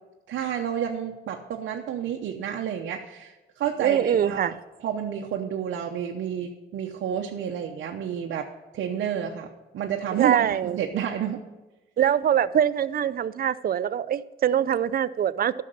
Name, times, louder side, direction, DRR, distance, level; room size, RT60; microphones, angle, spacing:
voice 1, 0.3-4.5 4.8-11.4, right 9 dB, 70° right, 0.9 m, -30 dB
voice 2, 3.8-4.5 10.1-10.8 12.0-15.5, right 9 dB, 50° right, 0.5 m, -23 dB
11.0 x 6.6 x 6.6 m
cardioid pair, 90°, 20 cm